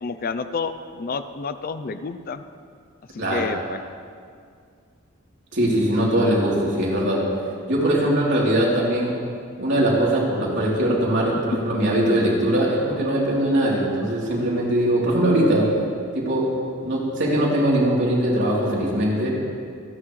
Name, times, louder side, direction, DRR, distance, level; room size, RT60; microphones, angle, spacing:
voice 1, 0.0-2.4 3.1-3.8, left 4 dB, 45° left, 11 dB, 0.5 m, -30 dB
voice 2, 5.5-7.2 7.7-9.1 9.6-15.7 16.1-16.5 16.8-19.3, right 1 dB, 60° right, -5 dB, 3.4 m, -21 dB
28.0 x 9.7 x 3.2 m, 2.2 s
head